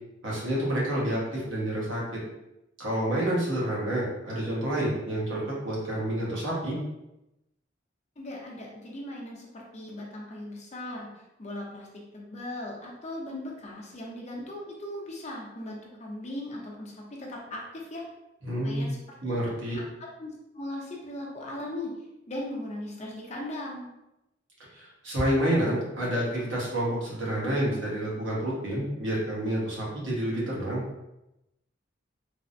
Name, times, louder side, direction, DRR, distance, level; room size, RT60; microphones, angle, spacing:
voice 1, 0.2-2.2 2.8-6.8 18.4-19.8 24.7-30.8, right 1 dB, 85° right, -5 dB, 1.1 m, -29 dB
voice 2, 8.2-18.0 18.6-19.3 19.7-21.9 22.3-23.9, left 1 dB, 35° left, -2 dB, 0.6 m, -38 dB
3.3 x 2.0 x 2.5 m, 0.92 s
head